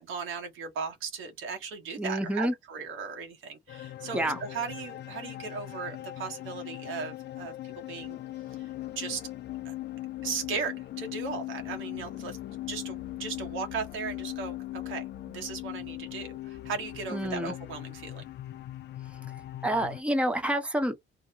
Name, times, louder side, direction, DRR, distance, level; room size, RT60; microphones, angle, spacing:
voice 1, 0.0-8.2 8.9-9.2 9.6-9.7 10.2-18.2, right 5 dB, 85° right, 1.1 m, -37 dB
voice 2, 2.0-2.5 4.1-4.4 17.1-17.5 19.6-20.9, right 1 dB, 5° right, 0.9 m, -28 dB
sound 1, 3.7-20.0, left 15 dB, 60° left, 0.4 m, -40 dB
2.8 x 2.2 x 2.7 m
cardioid pair, 90°, 20 cm